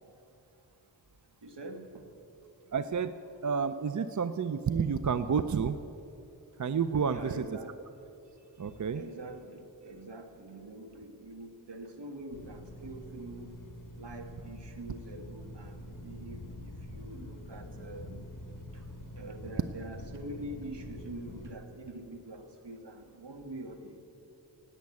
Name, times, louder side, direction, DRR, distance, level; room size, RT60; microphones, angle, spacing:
voice 1, 1.4-2.1 7.1-7.7 8.4-13.5 14.0-18.2 18.7-18.8 19.1-24.0, right 1 dB, 70° right, 5 dB, 1.7 m, -45 dB
voice 2, 2.7-5.8 6.6-7.4 8.6-9.0, right 6 dB, 45° right, 12 dB, 0.5 m, -30 dB
sound 1, 12.3-21.5, left 1 dB, 45° left, 1.2 m, -46 dB
17.0 x 9.3 x 8.4 m, 2.9 s
wide cardioid pair, 75°, 44 cm